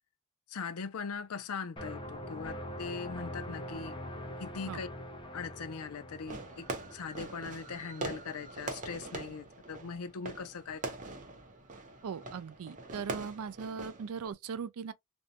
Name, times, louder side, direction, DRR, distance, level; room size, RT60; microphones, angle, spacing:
voice 1, 0.5-4.0 4.4-4.9 5.3-6.7 6.9-10.8, left 5 dB, 75° left, 0.5 m, -40 dB
sound 1, 1.8-8.5, left 1 dB, 20° left, 0.6 m, -44 dB
Fireworks, 6.3-14.3, right 2 dB, 35° right, 0.7 m, -43 dB
voice 2, 12.0-14.9, right 6 dB, 75° right, 0.4 m, -39 dB
2.6 x 2.1 x 2.7 m
head